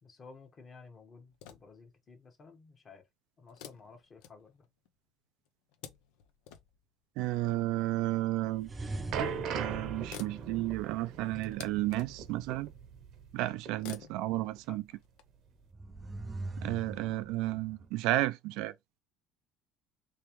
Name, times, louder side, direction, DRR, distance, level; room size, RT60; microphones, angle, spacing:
voice 1, 0.0-3.0 3.4-4.7 13.5-13.6 14.7-14.8, left 4 dB, 30° left, 1.2 m, -54 dB
sound 1, 1.3-1.9 3.5-4.9 5.4-6.8 8.0-8.1 9.2-9.3 9.6-9.7 9.9-12.4 13.7-15.2, left 10 dB, 85° left, 0.6 m, -51 dB
voice 2, 7.2-8.7 9.5-12.7 13.3-14.8 16.6-18.7, right 17 dB, 75° right, 0.3 m, -32 dB
sound 2, 8.5-13.4 13.7-13.8 14.6-14.7, right 6 dB, 55° right, 0.7 m, -39 dB
sound 3, 8.6-11.1 15.6-17.9, right 2 dB, 20° right, 0.5 m, -42 dB
3.4 x 3.1 x 3.0 m
cardioid pair, 130°, 0 cm